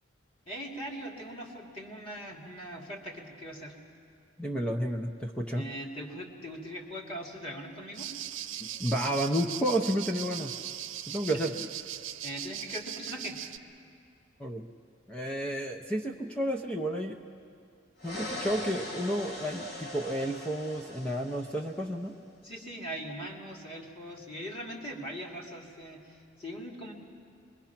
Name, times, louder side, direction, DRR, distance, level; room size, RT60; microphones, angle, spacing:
voice 1, 0.5-3.7 5.6-8.1 11.3-11.4 12.2-13.4 22.4-26.9, equal, 30° left, 0 dB, 2.5 m, -41 dB
voice 2, 4.4-5.7 8.6-10.6 11.1-11.5 14.4-14.7 15.1-17.2 18.0-22.2, equal, 5° left, 0 dB, 0.7 m, -31 dB
sound 1, 7.9-13.6, right 11 dB, 90° right, 0.8 m, -39 dB
sound 2, 18.0-21.9, left 1 dB, 55° left, 3.9 m, -41 dB
25.0 x 22.0 x 5.9 m, 2.4 s
head